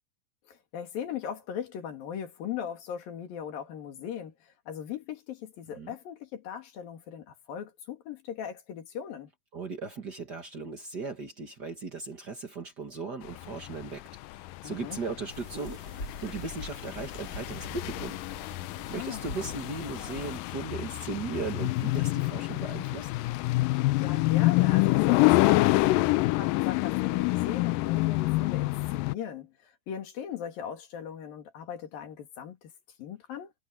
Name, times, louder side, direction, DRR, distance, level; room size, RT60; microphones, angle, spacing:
voice 1, 0.5-9.3 14.6-15.0 18.8-19.4 23.6-32.7 33.0-33.5, left 9 dB, 65° left, 4.0 m, -38 dB
voice 2, 9.5-14.0 14.3-18.2 18.9-23.1, right 4 dB, 45° right, 1.3 m, -37 dB
sound 1, 13.3-29.1, left 21 dB, 90° left, 2.0 m, -27 dB
sound 2, 15.3-20.4, left 2 dB, 30° left, 6.4 m, -43 dB
omnidirectional pair, 4.5 m